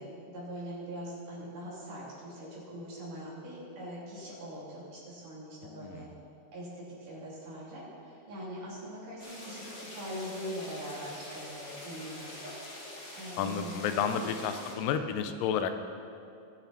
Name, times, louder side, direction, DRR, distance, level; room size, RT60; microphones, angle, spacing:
voice 1, 0.0-6.1 6.5-12.5 12.9-14.6, equal, 65° right, -7 dB, 4.7 m, -42 dB
voice 2, 5.6-6.1 13.4-15.8, left 7 dB, 85° left, 9 dB, 2.3 m, -31 dB
sound 1, 9.2-14.8, left 1 dB, 30° left, 1.5 m, -45 dB
20.0 x 7.0 x 4.2 m, 2.5 s
omnidirectional pair, 3.9 m